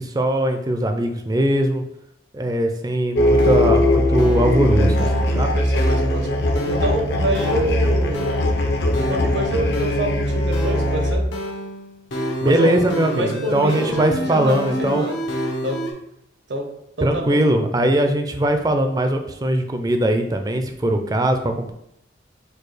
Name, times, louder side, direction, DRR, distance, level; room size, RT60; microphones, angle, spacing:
voice 1, 0.0-1.8 2.3-5.5 12.4-15.0 17.0-21.7, right 1 dB, 20° right, 6 dB, 0.4 m, -20 dB
sound 1, 3.1-11.2, left 1 dB, 60° left, 0.6 m, -20 dB
sound 2, 3.4-15.9, right 1 dB, 85° left, 0.9 m, -30 dB
voice 2, 5.2-6.3 6.6-8.4 8.9-11.2 12.4-12.8 13.2-15.2 15.6-15.8 16.5-16.7 17.0-17.4, right 1 dB, 75° right, 3 dB, 0.8 m, -27 dB
4.5 x 2.3 x 4.8 m, 0.77 s
head